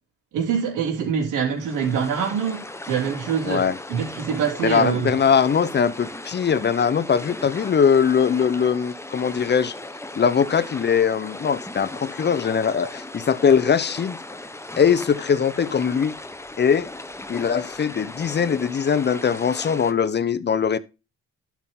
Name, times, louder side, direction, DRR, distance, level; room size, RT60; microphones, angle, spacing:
voice 1, 0.3-3.6 3.9-5.1, right 7 dB, 85° right, 3.6 m, -24 dB
sound 1, 1.5-19.9, left 2 dB, 10° left, 1.0 m, -37 dB
voice 2, 3.4-3.7 4.6-9.7 10.2-14.2 14.8-16.1 16.6-16.9 17.3-20.8, left 7 dB, 35° left, 0.9 m, -21 dB
12.0 x 5.9 x 3.8 m
cardioid pair, 90°, 30 cm